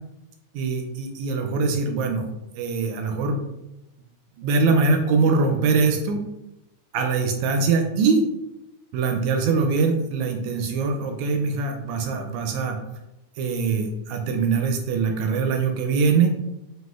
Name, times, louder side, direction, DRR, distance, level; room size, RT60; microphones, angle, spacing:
voice 1, 0.5-2.2 2.6-3.4 4.4-6.2 6.9-8.2 8.9-12.8 13.4-16.3, right 4 dB, 80° right, 4 dB, 1.7 m, -22 dB
5.9 x 2.7 x 2.4 m, 0.91 s
omnidirectional pair, 3.5 m